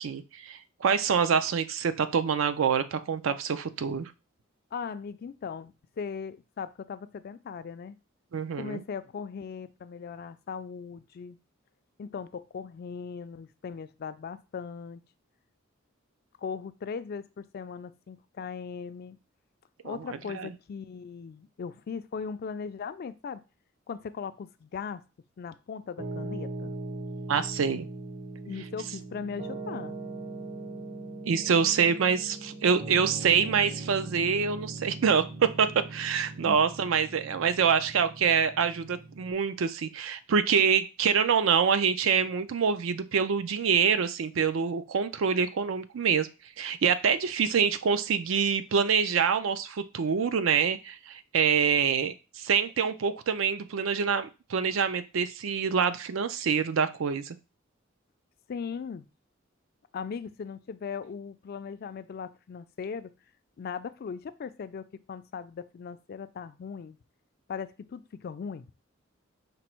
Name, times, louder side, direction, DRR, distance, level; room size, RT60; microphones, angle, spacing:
voice 1, 0.0-4.1 8.3-8.8 19.8-20.0 20.3-20.5 27.3-27.9 31.3-46.3 46.6-57.4, right 6 dB, 75° right, 12 dB, 0.4 m, -26 dB
voice 2, 4.7-7.9 8.6-11.4 12.0-15.0 16.4-19.2 19.8-23.4 23.9-25.0 25.4-26.7 28.4-29.9 36.4-36.6 58.5-59.0 59.9-63.1 63.6-67.0 67.5-68.7, left 6 dB, 50° left, 13 dB, 0.3 m, -38 dB
Piano, 26.0-39.3, right 2 dB, 40° right, 0.8 m, -40 dB
5.1 x 2.0 x 4.4 m, 0.30 s
head